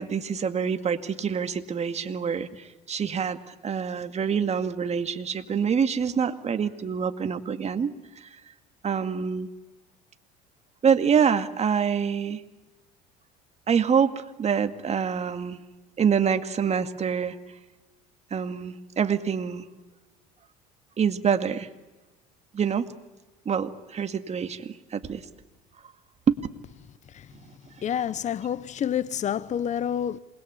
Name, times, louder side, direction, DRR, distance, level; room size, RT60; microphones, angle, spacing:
voice 1, 0.0-7.9 8.8-9.5 10.8-12.4 13.7-15.6 16.0-17.4 18.3-19.7 21.0-21.7 22.5-22.9 23.5-25.2 26.3-26.4, right 7 dB, 35° right, 2.1 m, -26 dB
voice 2, 27.8-30.2, left 9 dB, 40° left, 0.9 m, -28 dB
27.5 x 21.5 x 9.6 m
hypercardioid pair, 80°, 20 cm